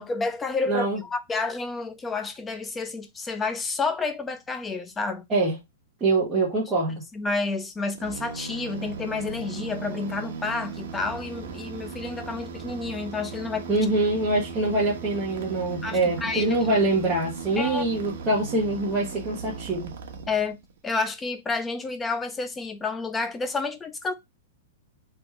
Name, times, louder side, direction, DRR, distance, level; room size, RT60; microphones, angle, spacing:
voice 1, 0.0-5.3 7.1-13.8 15.8-16.7 17.6-17.8 20.3-20.6 20.8-24.1, left 4 dB, 10° left, 0.4 m, -30 dB
voice 2, 0.7-1.0 5.3-5.6 6.0-6.9 13.7-19.9, right 2 dB, 10° right, 1.1 m, -24 dB
sound 1, 7.9-20.8, right 5 dB, 55° right, 1.0 m, -37 dB
3.5 x 3.0 x 4.6 m
supercardioid pair, 175°, 0 cm